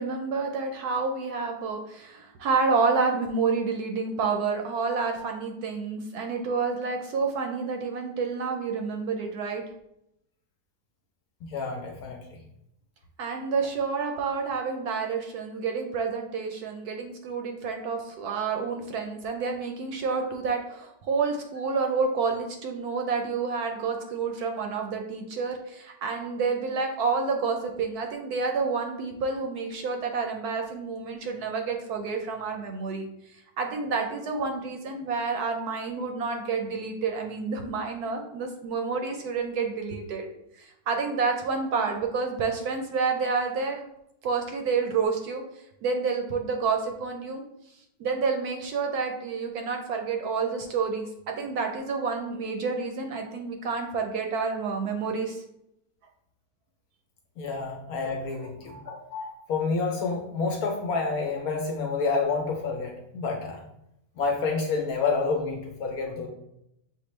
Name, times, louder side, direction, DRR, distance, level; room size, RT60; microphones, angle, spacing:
voice 1, 0.0-9.6 13.2-33.0 33.3-40.3 40.6-43.8 44.2-45.4 45.8-47.4 48.0-55.4 58.7-58.9, right 4 dB, 70° right, 3 dB, 1.0 m, -29 dB
voice 2, 11.4-12.4 57.4-63.6 64.2-66.3, left 4 dB, 65° left, 1 dB, 1.0 m, -29 dB
6.4 x 2.5 x 3.1 m, 0.81 s
omnidirectional pair, 1.9 m